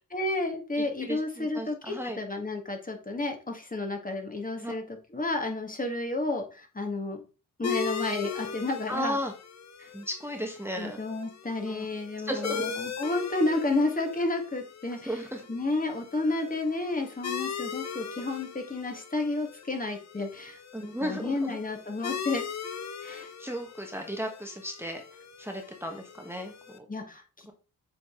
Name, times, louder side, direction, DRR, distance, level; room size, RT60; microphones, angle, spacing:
voice 1, 0.1-4.8 5.1-7.2 7.6-9.2 9.8-9.9 10.8-15.1 15.5-20.6 21.0-22.4 23.0-23.3 26.9-27.5, left 2 dB, 25° left, 4 dB, 1.7 m, -31 dB
voice 2, 0.8-2.2 4.6-4.7 8.9-9.3 9.9-11.0 11.7-11.9 12.2-12.8 14.9-15.4 20.7-21.6 23.4-25.0 25.4-26.8 27.5-27.6, equal, 5° right, 3 dB, 1.3 m, -35 dB
sound 1, 7.6-26.8, left 7 dB, 50° left, 0.9 m, -39 dB
7.6 x 3.9 x 3.7 m, 0.34 s
cardioid pair, 60°, 34 cm